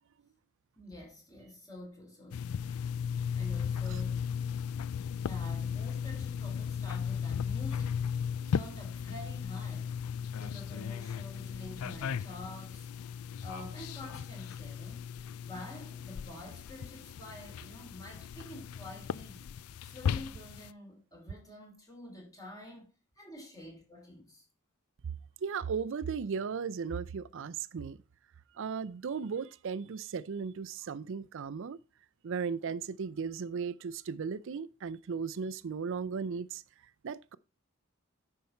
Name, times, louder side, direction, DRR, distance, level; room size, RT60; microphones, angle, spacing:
voice 1, 0.8-2.7 3.4-4.4 4.9-8.0 8.5-10.0 10.4-12.9 13.2-15.1 15.4-19.5 19.8-24.4, left 1 dB, 15° left, 3.0 m, -48 dB
sound 1, 2.3-20.7, left 7 dB, 80° left, 0.4 m, -36 dB
voice 2, 25.4-28.0 28.5-31.8 32.2-36.6 37.0-37.4, right 6 dB, 60° right, 0.4 m, -36 dB
9.4 x 5.6 x 4.3 m
head